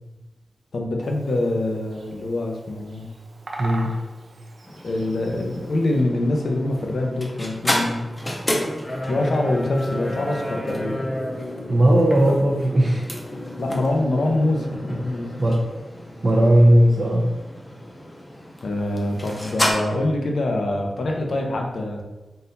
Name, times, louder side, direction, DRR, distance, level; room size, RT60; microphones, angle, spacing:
voice 1, 0.7-3.1 4.8-8.1 9.1-11.1 13.6-15.3 18.6-22.0, left 1 dB, 70° left, 1 dB, 0.7 m, -25 dB
Bird vocalization bird call bird song, 1.0-6.0, right 2 dB, 85° right, 0.6 m, -41 dB
voice 2, 3.6-4.0 11.7-13.2 15.4-15.7 16.2-17.3, right 1 dB, 40° right, -3 dB, 0.6 m, -17 dB
sound 1, 4.7-19.7, left 1 dB, 20° left, 0.7 m, -30 dB
4.0 x 3.9 x 2.7 m, 1.1 s
wide cardioid pair, 135°, 0 cm